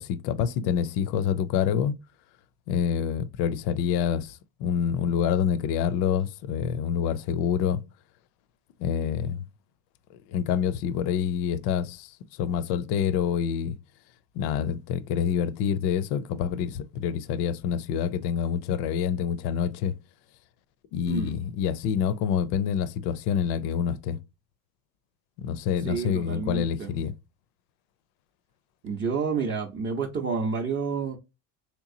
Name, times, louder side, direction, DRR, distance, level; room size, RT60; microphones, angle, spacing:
voice 1, 0.0-1.9 2.7-7.8 8.8-9.4 10.3-12.1 12.4-13.7 14.3-19.9 20.9-24.2 25.4-27.1, left 8 dB, 60° left, 0.5 m, -27 dB
voice 2, 25.8-26.9 28.8-31.2, right 5 dB, 25° right, 0.6 m, -29 dB
3.4 x 3.0 x 2.5 m
supercardioid pair, 115°, 45 cm